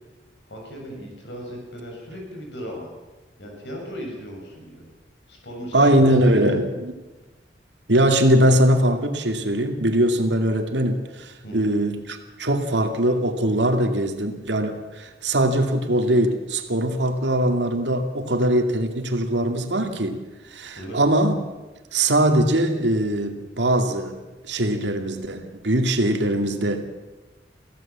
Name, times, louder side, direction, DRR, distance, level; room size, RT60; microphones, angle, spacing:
voice 1, 0.5-2.9 3.4-4.8 5.3-6.6 11.4-11.7 20.8-21.0, equal, 85° left, 7.3 m, -36 dB
voice 2, 5.7-6.9 7.9-20.2 20.5-21.3 21.9-24.1 24.5-26.8, right 1 dB, 90° right, 2.4 m, -21 dB
23.5 x 16.0 x 7.5 m
head